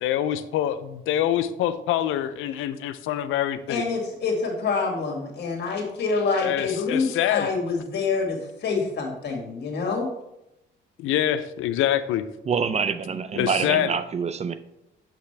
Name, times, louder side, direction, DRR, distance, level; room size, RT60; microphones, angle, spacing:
voice 1, 0.0-3.8 6.4-7.5 11.0-12.2 13.4-13.9, left 11 dB, 85° left, 0.5 m, -25 dB
voice 2, 3.7-10.1, left 4 dB, 60° left, 2.0 m, -26 dB
voice 3, 12.5-14.5, right 6 dB, 35° right, 0.5 m, -26 dB
6.6 x 5.8 x 3.3 m
cardioid pair, 90°, 20 cm